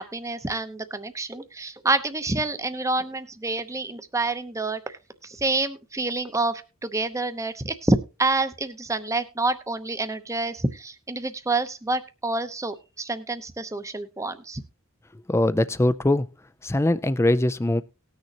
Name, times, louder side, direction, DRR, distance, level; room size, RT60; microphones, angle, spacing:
voice 1, 0.0-14.6, right 2 dB, 15° right, 10 dB, 0.8 m, -28 dB
voice 2, 15.3-16.3 16.6-17.8, left 1 dB, 15° left, 15 dB, 0.4 m, -21 dB
19.0 x 6.6 x 2.9 m, 0.30 s
head